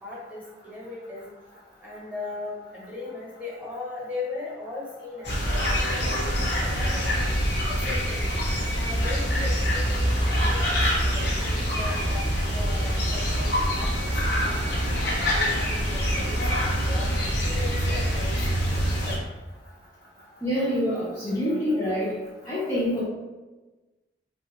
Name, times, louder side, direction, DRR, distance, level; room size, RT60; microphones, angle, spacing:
voice 1, 0.0-8.2 8.7-12.2 12.5-14.7 15.1-19.3 20.3-20.5, left 3 dB, 10° right, -6 dB, 1.1 m, -39 dB
sound 1, 5.2-19.2, equal, 70° left, 0.8 m, -25 dB
voice 2, 20.4-22.1 22.4-23.0, equal, 15° left, -10 dB, 0.6 m, -26 dB
3.6 x 2.4 x 2.9 m, 1.2 s
head